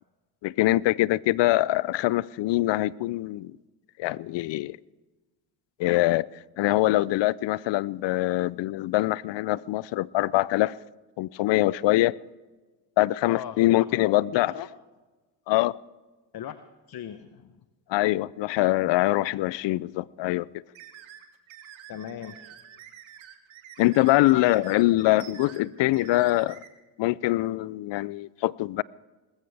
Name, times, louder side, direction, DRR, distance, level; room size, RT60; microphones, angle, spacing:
voice 1, 0.4-3.5 4.0-4.8 5.8-6.3 6.6-10.8 11.2-12.2 13.0-14.5 15.5-15.8 17.9-20.5 23.8-26.6 27.0-28.8, left 17 dB, 70° left, 0.5 m, -23 dB
voice 2, 13.2-14.7 16.3-16.6 16.9-17.5 21.9-22.6 24.3-24.6, left 10 dB, 55° left, 0.8 m, -38 dB
sound 1, 20.7-26.7, right 10 dB, 80° right, 1.6 m, -48 dB
20.0 x 14.5 x 3.4 m
supercardioid pair, 65°, 46 cm